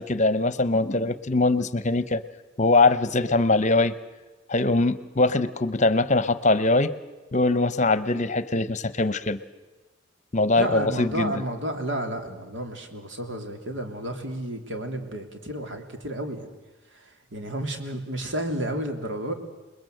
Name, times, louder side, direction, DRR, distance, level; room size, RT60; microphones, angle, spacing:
voice 1, 0.0-2.2 2.6-3.9 4.5-6.9 7.3-9.4 10.3-11.3, left 2 dB, 35° left, 15 dB, 0.9 m, -22 dB
voice 2, 10.6-16.5 17.3-19.3, right 1 dB, 75° right, 5 dB, 3.2 m, -31 dB
28.5 x 21.0 x 7.8 m, 1.2 s
head